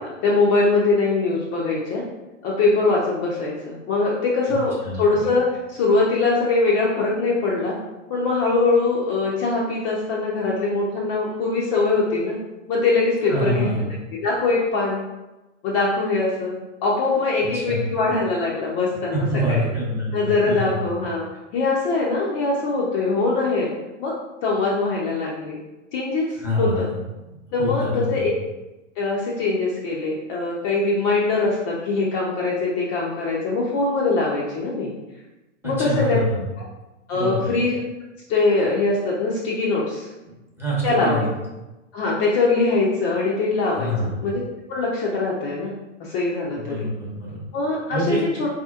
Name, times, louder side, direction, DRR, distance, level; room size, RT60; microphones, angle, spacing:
voice 1, 0.0-2.0 2.4-7.7 8.1-12.4 12.7-15.0 15.6-19.6 20.1-21.2 21.5-23.7 24.0-24.1 24.4-25.6 25.9-26.9 27.5-28.3 29.0-34.9 35.6-36.2 37.1-37.8 38.3-40.1 40.8-41.3 41.9-44.4 44.7-45.7 46.0-46.8 47.5-48.5, left 3 dB, 30° left, -4 dB, 0.5 m, -22 dB
voice 2, 4.8-5.2 13.3-13.9 17.6-17.9 19.1-20.7 26.4-26.9 27.6-28.3 35.6-36.4 37.1-37.5 40.6-41.2 43.7-44.1 46.5-47.4 47.9-48.2, equal, 5° right, -6 dB, 0.8 m, -25 dB
4.0 x 2.8 x 2.3 m, 1.0 s
hypercardioid pair, 130°, 38 cm